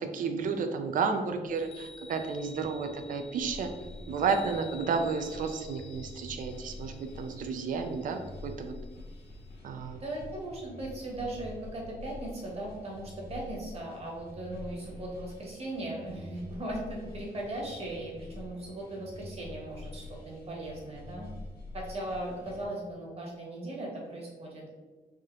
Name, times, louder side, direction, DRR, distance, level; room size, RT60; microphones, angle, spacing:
voice 1, 0.0-3.7 4.1-8.8 9.6-10.0, right 5 dB, 55° right, 6 dB, 0.4 m, -32 dB
Chime, 1.5-9.6, left 4 dB, 40° left, 0.4 m, -52 dB
sound 1, 3.4-22.7, left 2 dB, 85° left, 1.2 m, -46 dB
voice 2, 10.0-21.3 21.7-24.7, right 1 dB, 40° right, -2 dB, 1.1 m, -38 dB
3.5 x 2.7 x 3.6 m, 1.4 s
wide cardioid pair, 145°, 16 cm